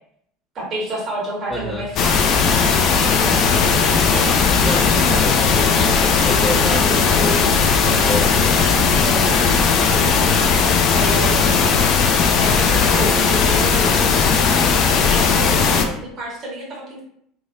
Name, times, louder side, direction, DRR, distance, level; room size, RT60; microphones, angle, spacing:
voice 1, 0.5-2.2 2.6-4.6 9.0-9.7 10.9-11.9 12.4-14.6 15.1-17.0, right 1 dB, 45° right, -3 dB, 1.5 m, -30 dB
voice 2, 1.5-1.9 4.6-8.4 11.1-11.2, left 1 dB, 5° left, -7 dB, 1.4 m, -28 dB
sound 1, 2.0-15.9, left 5 dB, 50° left, 0.4 m, -17 dB
3.1 x 2.7 x 2.5 m, 0.67 s
hypercardioid pair, 75°, 0 cm